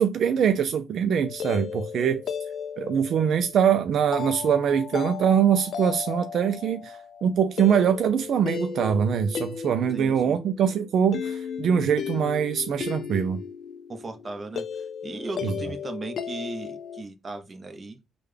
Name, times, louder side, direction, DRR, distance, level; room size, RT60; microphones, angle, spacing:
voice 1, 0.0-2.2 2.8-13.4 15.4-15.5, right 8 dB, 65° right, 0.3 m, -23 dB
sound 1, 1.2-17.0, left 7 dB, 60° left, 0.4 m, -35 dB
voice 2, 9.9-10.4 13.9-18.0, right 3 dB, 30° right, 0.7 m, -37 dB
3.5 x 2.2 x 3.2 m
cardioid pair, 90°, 0 cm